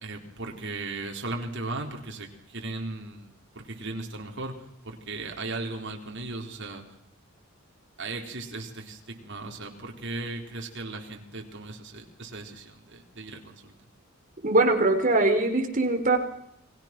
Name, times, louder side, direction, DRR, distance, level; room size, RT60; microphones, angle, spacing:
voice 1, 0.0-3.3 3.5-4.6 4.8-6.8 8.0-13.7, right 2 dB, 60° right, 2 dB, 4.0 m, -37 dB
voice 2, 14.4-16.2, right 2 dB, 40° right, 4 dB, 4.0 m, -22 dB
29.5 x 21.5 x 6.1 m, 0.78 s
head